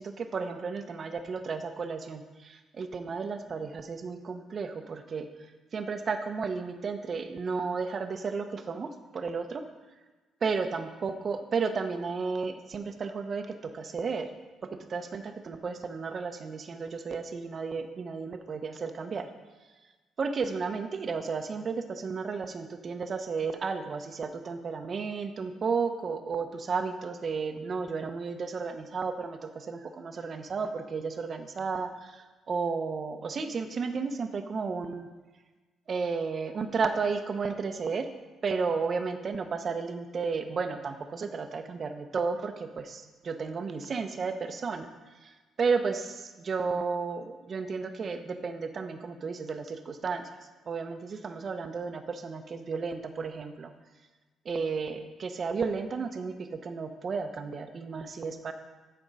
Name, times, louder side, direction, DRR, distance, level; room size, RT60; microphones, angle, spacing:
voice 1, 0.0-5.3 5.7-9.6 10.4-14.3 14.6-19.3 20.2-35.1 35.9-38.1 38.4-44.9 45.2-50.3 50.7-53.7 54.4-58.5, right 5 dB, 45° right, 7 dB, 0.9 m, -33 dB
13.5 x 4.5 x 5.5 m, 1.3 s
cardioid pair, 90°, 0 cm